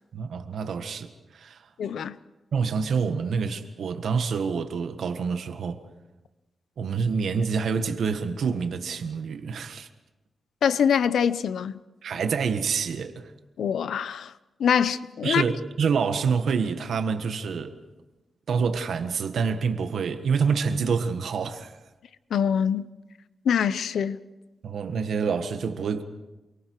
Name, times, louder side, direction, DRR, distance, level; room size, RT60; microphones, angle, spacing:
voice 1, 0.1-1.6 2.5-5.8 6.8-9.9 12.0-13.3 15.2-17.8 18.5-21.8 24.6-26.0, right 5 dB, 75° right, 1.6 m, -27 dB
voice 2, 1.8-2.1 10.6-11.8 13.6-14.3 14.6-15.4 22.3-22.8 23.5-24.2, left 8 dB, 90° left, 0.7 m, -24 dB
28.5 x 23.5 x 4.8 m
wide cardioid pair, 135°, 0 cm